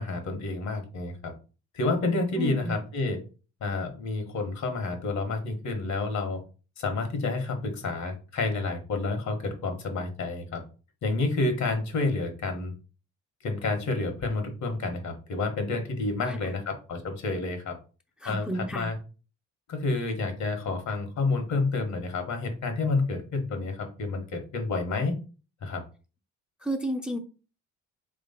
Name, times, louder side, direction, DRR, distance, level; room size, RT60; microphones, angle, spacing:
voice 1, 0.0-1.3 1.7-3.2 3.6-6.4 6.8-10.6 11.0-12.7 13.4-17.7 18.2-19.0 19.7-25.2 25.6-25.8, left 3 dB, 65° left, 5 dB, 1.3 m, -29 dB
voice 2, 2.4-2.7 16.3-16.4 18.2-18.9 26.6-27.2, right 1 dB, 5° right, 4 dB, 0.5 m, -31 dB
3.4 x 3.1 x 4.1 m, 0.35 s
cardioid pair, 90°, 30 cm